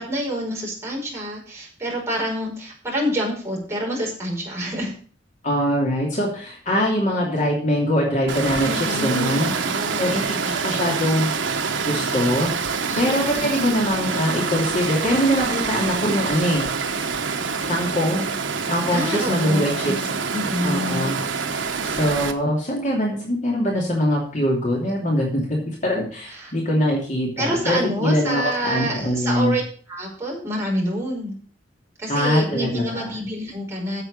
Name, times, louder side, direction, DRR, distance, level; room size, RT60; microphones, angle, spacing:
voice 1, 0.0-4.9 8.6-10.9 12.9-13.8 18.9-21.1 26.3-26.5 27.4-29.6 29.9-31.3 32.0-34.0, equal, 15° right, -4 dB, 5.4 m, -28 dB
voice 2, 5.4-8.7 9.0-9.5 10.0-10.3 10.6-11.3 11.9-12.5 13.0-16.7 17.4-18.3 18.7-19.9 20.6-21.2 21.8-25.6 25.8-29.5 32.1-33.1, equal, 40° left, -2 dB, 2.8 m, -22 dB
Water, 8.3-22.3, right 5 dB, 75° right, 1.2 m, -26 dB
9.3 x 7.8 x 6.6 m, 0.44 s
head